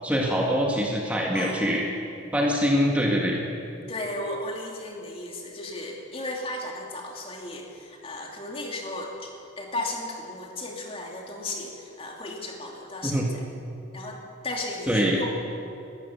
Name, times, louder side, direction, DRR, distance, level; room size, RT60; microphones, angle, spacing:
voice 1, 0.0-1.8 2.3-3.4 13.0-13.3 14.9-15.2, equal, 5° right, -2 dB, 2.0 m, -24 dB
voice 2, 1.3-1.6 3.9-13.2 13.9-15.3, left 2 dB, 30° left, 0 dB, 2.7 m, -35 dB
22.0 x 14.0 x 8.4 m, 2.7 s
head